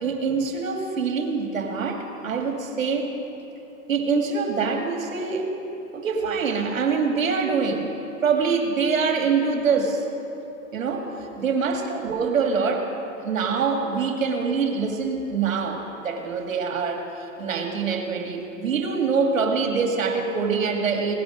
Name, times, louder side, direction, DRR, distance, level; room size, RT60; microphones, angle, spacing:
voice 1, 0.0-3.1 3.9-5.5 5.9-10.0 10.7-11.1 11.4-12.9 13.2-21.1, right 5 dB, 70° right, 3 dB, 2.3 m, -24 dB
18.0 x 11.5 x 6.3 m, 3.0 s
figure-of-eight pair, 105°, 41 cm